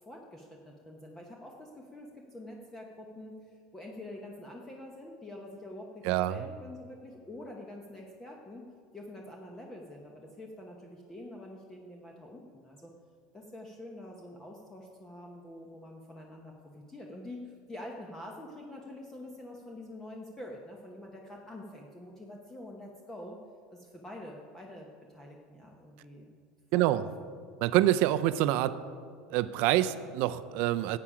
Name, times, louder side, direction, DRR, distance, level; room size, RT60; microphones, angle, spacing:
voice 1, 0.0-8.7 8.9-12.9 13.3-23.4 23.7-26.3 26.7-27.1, left 1 dB, 10° left, 0 dB, 0.9 m, -46 dB
voice 2, 6.0-6.4 26.7-27.0 27.6-28.8 29.3-31.0, right 14 dB, 60° right, 13 dB, 0.5 m, -26 dB
13.0 x 8.6 x 4.9 m, 2.2 s
supercardioid pair, 145°, 3 cm